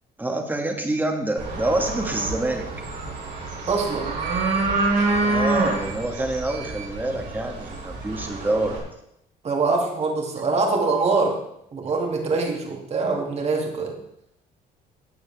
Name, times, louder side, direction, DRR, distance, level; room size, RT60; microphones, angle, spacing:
voice 1, 0.2-2.7 5.2-8.8, right 2 dB, 10° right, 3 dB, 1.8 m, -26 dB
sound 1, 1.4-8.8, right 3 dB, 75° right, 3.8 m, -27 dB
voice 2, 3.7-4.1 9.4-11.4 11.7-14.0, right 4 dB, 40° right, 1 dB, 2.4 m, -24 dB
13.0 x 8.7 x 3.5 m, 0.78 s
cardioid pair, 110°, 17 cm